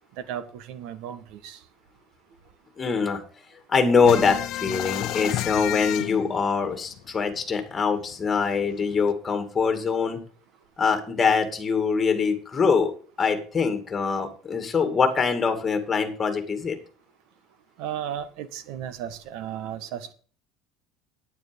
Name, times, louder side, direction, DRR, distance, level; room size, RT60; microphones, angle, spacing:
voice 1, 0.2-1.6 17.8-20.1, right 10 dB, 70° right, 12 dB, 1.6 m, -35 dB
voice 2, 2.8-3.2 3.7-10.2 10.8-12.9 13.2-16.8, left 5 dB, 20° left, 6 dB, 2.4 m, -23 dB
sound 1, 4.0-7.4 7.7-7.8 8.1-9.1, left 15 dB, 55° left, 0.8 m, -30 dB
9.3 x 9.3 x 5.3 m, 0.41 s
cardioid pair, 150°, 0 cm